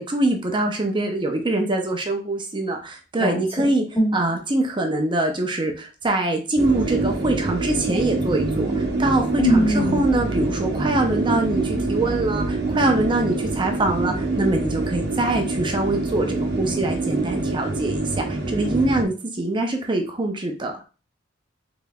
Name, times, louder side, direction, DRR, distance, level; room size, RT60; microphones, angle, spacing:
voice 1, 0.0-3.8 4.1-20.7, right 2 dB, 25° right, 3 dB, 0.6 m, -24 dB
sound 1, 6.6-19.0, right 2 dB, 55° right, 0.9 m, -25 dB
voice 2, 9.4-10.0, equal, 10° left, -4 dB, 1.6 m, -20 dB
3.9 x 3.8 x 2.3 m, 0.34 s
head